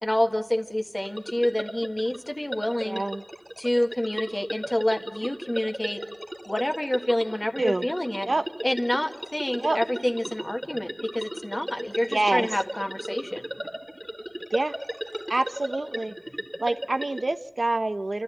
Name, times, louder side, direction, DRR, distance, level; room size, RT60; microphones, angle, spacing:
voice 1, 0.0-3.0 3.6-6.0 6.5-8.3 8.6-13.4, left 1 dB, 30° left, 5 dB, 1.8 m, -28 dB
sound 1, 1.0-17.3, equal, 20° right, 1.8 m, -37 dB
voice 2, 2.8-3.2 7.6-7.9 8.2-8.5 9.6-9.8 12.1-12.5 14.5-14.8 15.3-16.1 16.6-18.2, right 2 dB, 80° right, 11 dB, 0.7 m, -26 dB
28.5 x 14.0 x 9.0 m, 0.88 s
wide cardioid pair, 45°, 0 cm